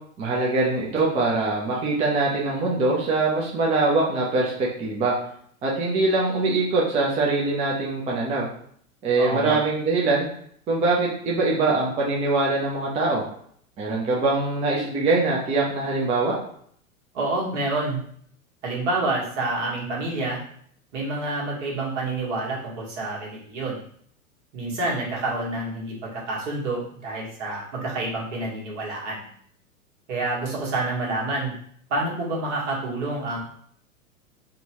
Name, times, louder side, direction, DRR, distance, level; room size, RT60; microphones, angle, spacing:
voice 1, 0.2-5.1 5.6-8.5 9.0-10.3 10.7-13.2 13.8-16.3, right 3 dB, 15° right, -4 dB, 0.4 m, -23 dB
voice 2, 9.2-9.6 17.1-18.0 18.6-20.4 20.9-23.8 24.5-29.2 30.1-31.5 31.9-33.4, right 2 dB, 55° right, -3 dB, 1.4 m, -28 dB
3.6 x 2.2 x 2.9 m, 0.63 s
hypercardioid pair, 100°, 42 cm